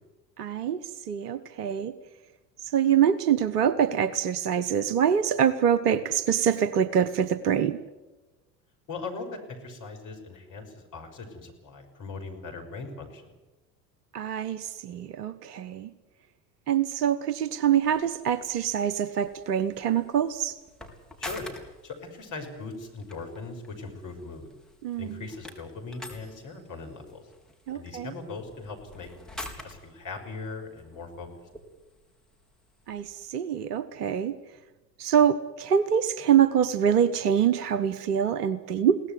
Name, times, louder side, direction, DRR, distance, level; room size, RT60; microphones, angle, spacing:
voice 1, 0.4-0.8 1.1-1.9 2.6-7.8 14.1-15.9 16.7-20.6 24.8-25.2 27.7-28.1 32.9-34.3 35.0-39.0, right 8 dB, 65° right, 15 dB, 1.2 m, -25 dB
voice 2, 8.9-13.3 21.2-21.5 21.8-24.5 25.0-27.3 27.7-29.1 29.6-31.3, left 3 dB, 35° left, 3 dB, 6.0 m, -39 dB
sound 1, 17.8-33.3, left 1 dB, ahead, 4.3 m, -48 dB
22.5 x 17.5 x 9.5 m, 1.1 s
figure-of-eight pair, 70°, 50 cm